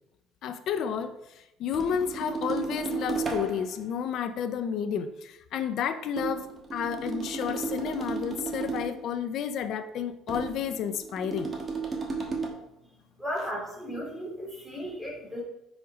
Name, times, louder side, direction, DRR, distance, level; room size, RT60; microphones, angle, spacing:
voice 1, 0.4-11.5, left 8 dB, 60° left, 9 dB, 0.4 m, -31 dB
sound 1, 1.7-3.8 6.2-9.1 10.3-12.5, right 4 dB, 25° right, 1.3 m, -34 dB
voice 2, 13.2-15.4, equal, 5° left, -3 dB, 2.5 m, -35 dB
5.1 x 4.9 x 5.0 m, 0.87 s
cardioid pair, 120°, 0 cm